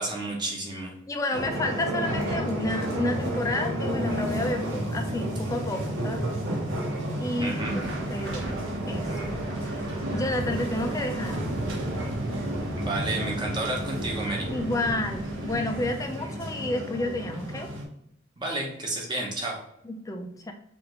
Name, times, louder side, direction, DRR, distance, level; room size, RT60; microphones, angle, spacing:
voice 1, 0.0-0.9 7.4-7.8 12.7-14.5 18.4-19.6, right 2 dB, 20° right, -2 dB, 0.8 m, -31 dB
voice 2, 1.1-6.3 7.2-9.3 9.6-9.8 10.1-11.4 14.5-17.7 19.8-20.5, left 1 dB, 15° left, 5 dB, 0.4 m, -31 dB
sound 1, 1.3-17.8, equal, 90° right, 1.0 m, -31 dB
sound 2, 7.5-15.9, right 2 dB, 65° right, 1.0 m, -38 dB
4.9 x 2.5 x 3.0 m, 0.76 s
head